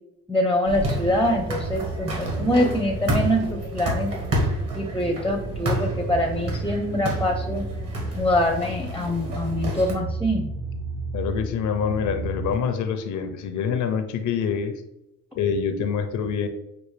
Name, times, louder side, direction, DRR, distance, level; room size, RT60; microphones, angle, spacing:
voice 1, 0.3-4.1 4.8-7.6 8.1-10.5, left 1 dB, 5° left, 4 dB, 0.6 m, -24 dB
sound 1, 0.6-9.9, right 1 dB, 50° right, 1.6 m, -30 dB
sound 2, 1.0-12.5, right 2 dB, 70° right, 1.2 m, -33 dB
voice 2, 11.1-14.7 15.4-16.5, left 7 dB, 75° left, 8 dB, 0.6 m, -26 dB
6.2 x 2.5 x 3.2 m, 0.87 s
cardioid pair, 90°, 30 cm